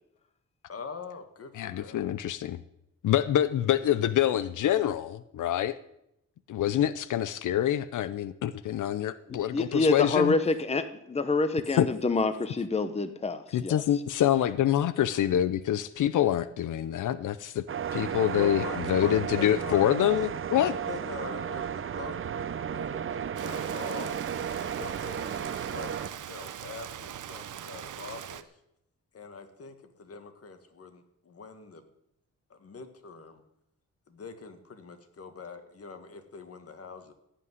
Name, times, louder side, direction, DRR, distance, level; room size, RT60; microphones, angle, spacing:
voice 1, 0.7-2.0 18.3-20.0 20.6-24.2 24.8-28.6 29.1-31.9 32.5-33.4 34.1-37.1, left 5 dB, 50° left, 7 dB, 1.8 m, -43 dB
voice 2, 1.5-2.6 3.0-5.8 6.5-10.3 11.7-11.9 13.5-17.6 17.9-20.7, left 11 dB, 90° left, 14 dB, 0.6 m, -26 dB
voice 3, 9.5-13.8, left 3 dB, 20° left, 10 dB, 0.8 m, -27 dB
sound 1, 17.7-26.1, right 8 dB, 45° right, 0.6 m, -33 dB
Rain, 23.3-28.4, right 10 dB, 85° right, 0.8 m, -41 dB
16.5 x 5.9 x 9.5 m, 0.81 s
wide cardioid pair, 120°, 30 cm